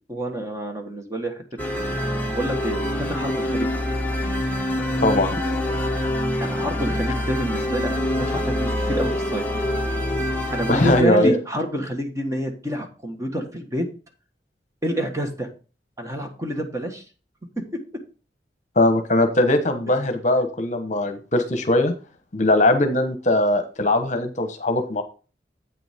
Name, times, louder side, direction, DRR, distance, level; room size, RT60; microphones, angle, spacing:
voice 1, 0.1-1.4 2.3-3.7 6.4-9.6 10.5-13.9 14.8-15.5 16.0-17.0, equal, 20° right, 4 dB, 1.4 m, -27 dB
sound 1, 1.6-11.0, left 1 dB, 10° left, 1.1 m, -25 dB
voice 2, 5.0-5.4 10.7-11.3 18.8-21.9 22.3-25.0, left 1 dB, 45° left, 8 dB, 1.1 m, -20 dB
8.5 x 7.0 x 3.6 m, 0.35 s
head